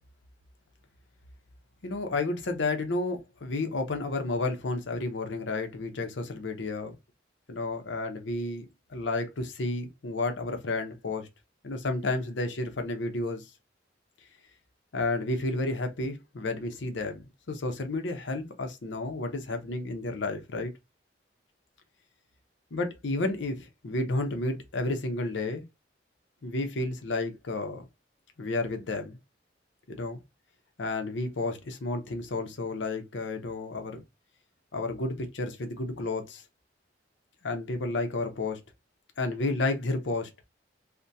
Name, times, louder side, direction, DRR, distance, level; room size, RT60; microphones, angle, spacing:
voice 1, 1.8-6.9 7.5-11.3 11.6-13.5 14.9-20.7 22.7-25.6 26.4-27.8 28.4-29.2 29.9-30.2 30.8-34.0 34.7-36.4 37.4-38.6 39.2-40.3, left 2 dB, 80° left, 0.7 m, -31 dB
3.4 x 2.1 x 2.7 m
head